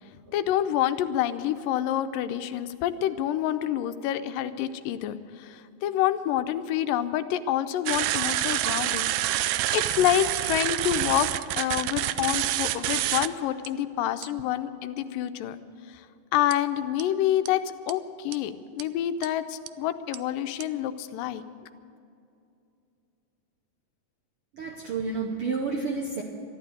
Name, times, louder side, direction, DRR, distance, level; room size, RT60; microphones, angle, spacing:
voice 1, 0.3-11.3 11.6-15.6 15.9-16.1 16.3-21.4, left 11 dB, 90° left, 10 dB, 2.4 m, -27 dB
sound 1, 7.9-13.3 13.6-13.7 14.2-14.4 16.5-16.6 17.0-17.1 17.5-17.6 17.9-18.0 18.3-18.4 18.8-18.9 19.2-19.3 19.7-19.8 20.1-20.2 20.6-20.7, right 14 dB, 90° right, 1.6 m, -27 dB
voice 2, 24.5-26.2, right 4 dB, 70° right, 1 dB, 1.3 m, -30 dB
13.5 x 11.5 x 8.3 m, 2.6 s
omnidirectional pair, 3.8 m